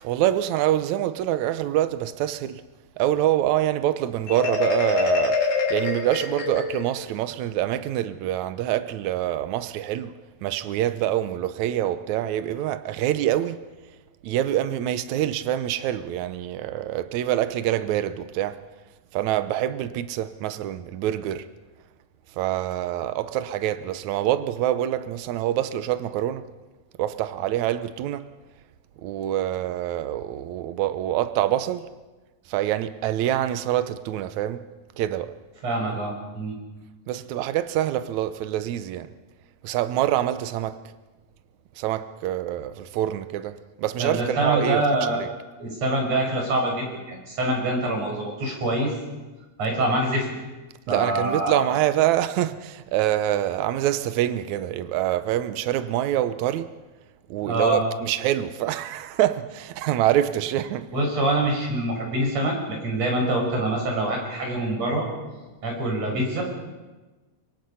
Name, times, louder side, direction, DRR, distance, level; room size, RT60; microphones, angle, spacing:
voice 1, 0.0-2.6 3.0-5.4 5.7-10.1 10.4-13.6 14.2-18.6 19.1-21.5 22.4-26.5 27.0-28.3 29.0-31.9 32.5-34.7 35.0-35.3 37.1-39.1 39.6-40.8 41.8-44.8 45.2-45.3 50.9-56.7 57.3-60.9, right 12 dB, 90° right, 1.6 m, -25 dB
Marimba xylophone, 4.3-7.0, left 4 dB, 45° left, 3.6 m, -25 dB
voice 2, 35.6-36.5 44.0-45.2 45.6-48.9 49.6-50.3 50.9-51.6 57.4-57.8 60.9-65.0 65.6-66.4, right 1 dB, 40° right, 6.6 m, -25 dB
24.5 x 24.5 x 5.6 m
omnidirectional pair, 4.4 m